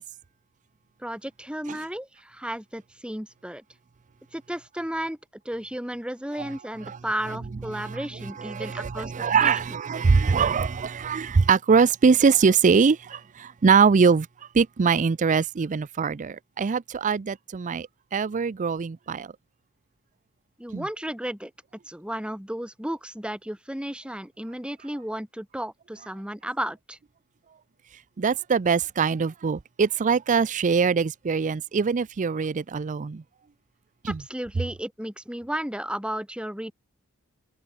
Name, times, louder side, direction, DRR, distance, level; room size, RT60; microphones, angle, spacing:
voice 1, 1.0-3.6 4.3-5.2 5.4-9.6 20.6-21.5 21.9-27.0 34.1-36.7, right 1 dB, 5° right, 2.5 m, -33 dB
voice 2, 8.4-14.3 14.5-19.3 20.7-20.9 28.2-33.2 34.0-34.2, right 5 dB, 35° right, 0.4 m, -22 dB
head